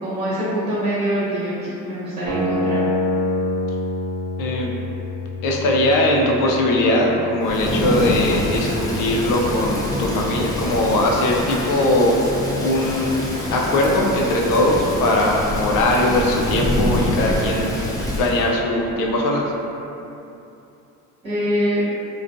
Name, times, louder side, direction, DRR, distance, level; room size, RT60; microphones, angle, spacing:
voice 1, 0.0-2.9 21.2-21.8, equal, 15° right, -12 dB, 1.0 m, -24 dB
sound 1, 2.3-8.3, left 1 dB, 60° right, 0.7 m, -27 dB
voice 2, 4.4-4.7 5.4-12.2 12.6-13.2 13.5-17.7 18.2-19.5, left 1 dB, 65° left, -1 dB, 0.5 m, -20 dB
Thunder / Rain, 7.4-18.5, left 1 dB, 10° left, 0.4 m, -25 dB
2.4 x 2.2 x 2.5 m, 2.8 s
supercardioid pair, 90°, 36 cm